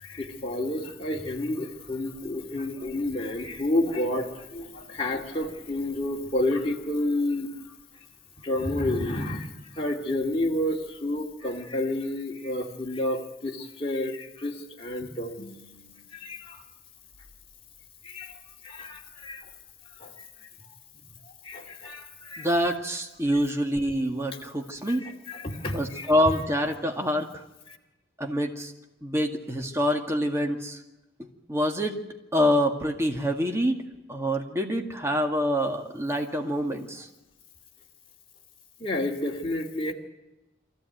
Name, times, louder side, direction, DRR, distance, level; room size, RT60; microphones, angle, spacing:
voice 1, 0.0-7.5 8.4-9.5 9.8-16.6 18.0-18.3 18.6-19.4 20.0-20.1 21.4-22.5 24.9-26.1 27.7-27.8 38.8-39.9, left 1 dB, 30° left, -2 dB, 2.2 m, -30 dB
voice 2, 22.4-25.0 25.7-27.4 28.2-28.7 29.0-30.8 31.5-32.0 32.3-37.1, equal, 15° right, 2 dB, 2.0 m, -26 dB
24.0 x 15.0 x 9.2 m, 0.99 s
head